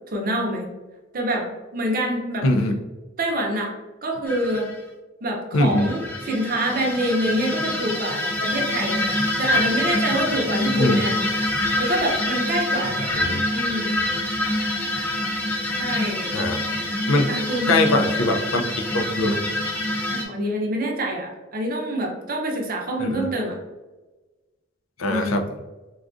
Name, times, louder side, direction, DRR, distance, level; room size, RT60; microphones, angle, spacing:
voice 1, 0.1-0.7 1.1-2.5 3.2-3.7 4.0-4.7 5.2-9.0 9.4-11.2 11.8-13.1 13.5-14.0 15.8-16.3 17.3-17.8 20.1-23.6 25.1-25.5, right 1 dB, 45° right, 0 dB, 0.6 m, -26 dB
voice 2, 2.4-2.7 5.5-5.9 10.8-11.0 12.9-13.4 16.3-16.6 17.1-17.2 17.7-18.6 18.9-19.4 23.0-23.3 25.0-25.4, left 2 dB, 85° left, 5 dB, 0.4 m, -22 dB
sound 1, 4.3-4.7 5.6-20.2, left 1 dB, 10° left, 0.3 m, -25 dB
3.6 x 2.3 x 2.4 m, 1.2 s
head